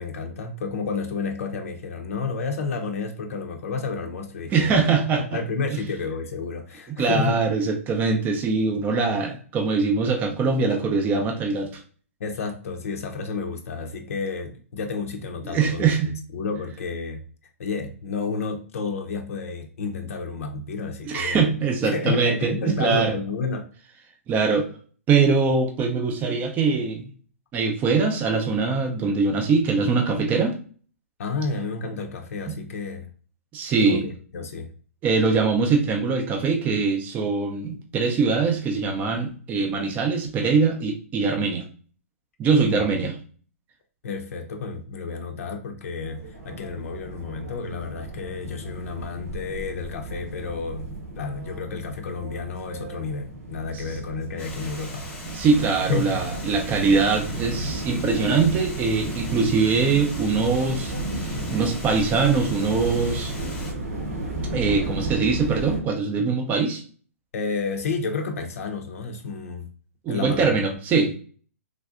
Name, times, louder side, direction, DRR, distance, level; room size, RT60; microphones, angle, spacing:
voice 1, 0.0-4.8 5.3-7.4 12.2-15.9 16.3-17.2 17.6-21.5 21.8-23.7 31.2-33.1 33.8-34.7 42.6-42.9 44.0-50.9 51.2-55.1 55.9-56.2 67.3-69.7 70.1-70.6, left 4 dB, 70° left, 5 dB, 0.5 m, -30 dB
voice 2, 4.5-5.4 6.9-11.8 15.4-16.1 21.1-23.1 24.3-24.7 25.1-27.1 27.5-30.5 32.5-32.6 33.5-34.0 35.0-41.7 42.4-43.1 53.7-53.8 55.3-63.3 64.5-66.8 70.0-71.2, right 4 dB, 20° right, 2 dB, 0.5 m, -22 dB
Teufelsberg ambient sounds, 46.0-65.8, right 1 dB, 80° right, 1.2 m, -34 dB
Water, 54.4-63.7, left 2 dB, 15° left, 1.0 m, -41 dB
3.2 x 2.6 x 2.4 m, 0.43 s
hypercardioid pair, 130°, 8 cm